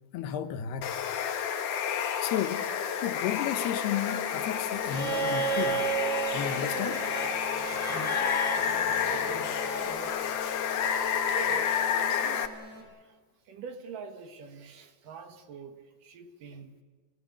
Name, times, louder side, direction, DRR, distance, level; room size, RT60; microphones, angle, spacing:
voice 1, 0.1-1.0 2.2-2.7 3.0-5.9 6.3-7.1, left 10 dB, 85° left, 3.2 m, -33 dB
Water, 0.8-12.5, left 8 dB, 60° left, 2.6 m, -30 dB
sound 1, 3.8-12.8, right 1 dB, 90° right, 7.8 m, -48 dB
Bowed string instrument, 4.9-10.0 11.4-11.5, right 4 dB, 30° right, 2.8 m, -33 dB
voice 2, 9.0-10.4 11.3-13.2 13.5-16.8, right 6 dB, 60° right, 3.0 m, -45 dB
28.0 x 18.5 x 8.4 m
omnidirectional pair, 4.5 m